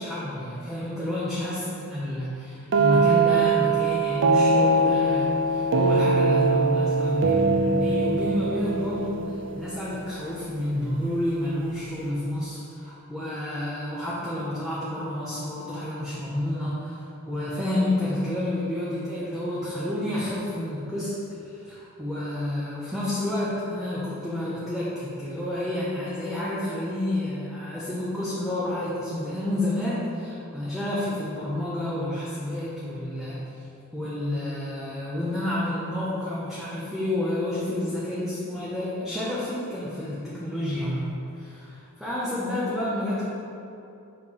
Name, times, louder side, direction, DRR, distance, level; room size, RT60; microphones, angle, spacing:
voice 1, 0.0-33.6 33.9-43.2, left 1 dB, ahead, -9 dB, 0.7 m, -30 dB
sound 1, 2.7-10.4, right 3 dB, 55° right, 0.4 m, -22 dB
6.7 x 3.3 x 5.4 m, 2.7 s
head